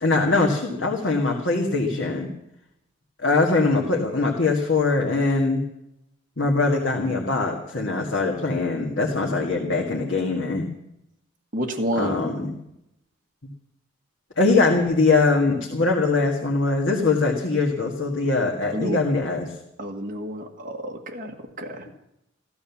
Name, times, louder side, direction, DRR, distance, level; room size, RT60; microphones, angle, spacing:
voice 1, 0.0-2.3 3.2-5.7 6.4-10.7 12.0-12.6 14.4-19.5 21.9-22.0, left 3 dB, 65° left, 0 dB, 1.8 m, -22 dB
voice 2, 11.5-12.1 18.7-19.0 19.8-21.9, equal, 40° right, 1 dB, 1.7 m, -29 dB
15.0 x 12.5 x 7.1 m, 0.83 s
head